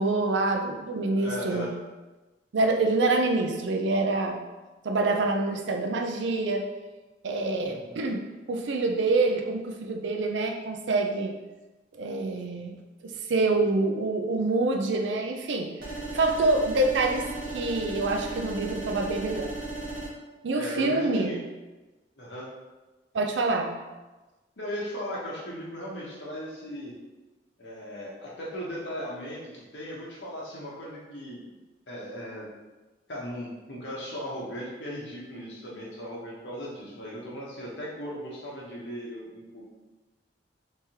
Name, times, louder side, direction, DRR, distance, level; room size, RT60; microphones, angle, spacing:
voice 1, 0.0-1.7 2.5-4.4 4.8-6.7 7.2-11.4 11.9-12.8 13.0-15.7 16.1-19.5 20.4-21.3 23.1-23.8, right 2 dB, 90° right, 3 dB, 0.5 m, -26 dB
voice 2, 1.1-1.7 7.6-8.0 20.5-21.4 22.2-22.5 24.6-26.9 27.6-31.4 31.9-32.5 33.1-39.6, equal, 90° left, -5 dB, 1.1 m, -37 dB
sound 1, 15.8-20.1, right 2 dB, 55° right, 1.0 m, -35 dB
3.4 x 3.2 x 2.9 m, 1.1 s
head